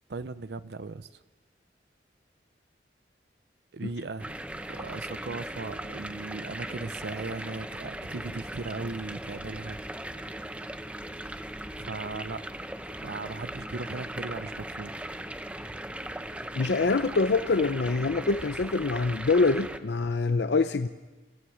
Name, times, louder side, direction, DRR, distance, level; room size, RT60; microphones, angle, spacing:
voice 1, 0.1-1.1 3.7-4.4 4.7-9.8 11.8-12.4 13.0-14.9, right 3 dB, 65° right, 14 dB, 0.6 m, -37 dB
sound 1, 4.2-19.8, right 1 dB, 5° right, 0.7 m, -38 dB
voice 2, 16.5-20.9, left 3 dB, 70° left, 10 dB, 0.6 m, -25 dB
27.0 x 16.0 x 6.4 m, 1.2 s
head